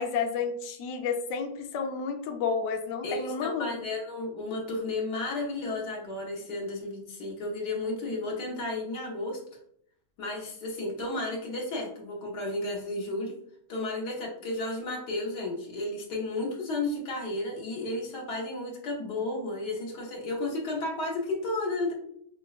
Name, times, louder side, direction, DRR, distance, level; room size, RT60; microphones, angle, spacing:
voice 1, 0.0-3.9, left 5 dB, 70° left, 4 dB, 0.8 m, -31 dB
voice 2, 3.0-9.4 10.2-13.3 13.7-21.9, left 2 dB, 85° left, -1 dB, 1.6 m, -33 dB
5.8 x 2.1 x 2.3 m, 0.68 s
omnidirectional pair, 1.7 m